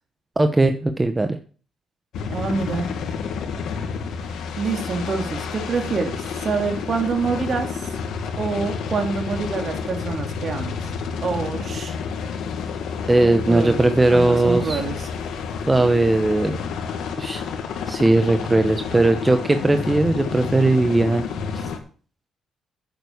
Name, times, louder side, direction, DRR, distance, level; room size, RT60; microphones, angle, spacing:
voice 1, 0.4-1.4 13.1-14.8 15.7-16.6 17.2-17.4 17.9-21.2 21.5-21.7, right 2 dB, 15° right, 7 dB, 1.0 m, -18 dB
sound 1, 2.1-21.8, left 6 dB, 80° left, 1.9 m, -30 dB
voice 2, 2.3-2.9 4.6-7.8 8.4-10.8 11.2-12.0 13.2-13.8 14.1-15.1, right 5 dB, 50° right, 4 dB, 2.9 m, -26 dB
9.3 x 8.0 x 7.1 m, 0.41 s
cardioid pair, 90°, 0 cm